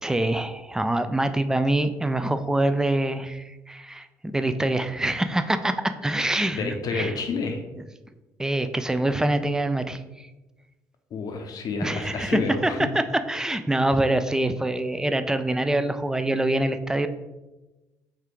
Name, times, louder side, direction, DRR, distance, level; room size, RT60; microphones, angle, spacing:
voice 1, 0.0-4.1 4.3-7.1 8.4-10.0 11.8-13.0 13.3-17.1, right 1 dB, 5° right, 9 dB, 0.3 m, -25 dB
voice 2, 6.5-7.6 11.1-12.8, left 4 dB, 45° left, 4 dB, 0.6 m, -29 dB
3.6 x 3.3 x 3.0 m, 1.1 s
figure-of-eight pair, 45°, 9 cm